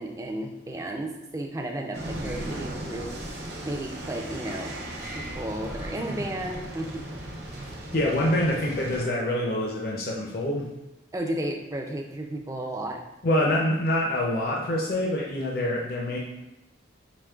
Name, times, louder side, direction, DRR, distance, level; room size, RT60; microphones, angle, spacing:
voice 1, 0.0-3.2 3.6-4.7 5.2-7.1 11.1-13.0, right 1 dB, 15° right, 2 dB, 0.3 m, -33 dB
sound 1, 1.9-9.1, right 1 dB, 55° right, 0.7 m, -37 dB
voice 2, 7.9-10.7 13.2-16.2, left 1 dB, 50° left, -2 dB, 0.5 m, -25 dB
5.0 x 2.9 x 2.3 m, 0.94 s
head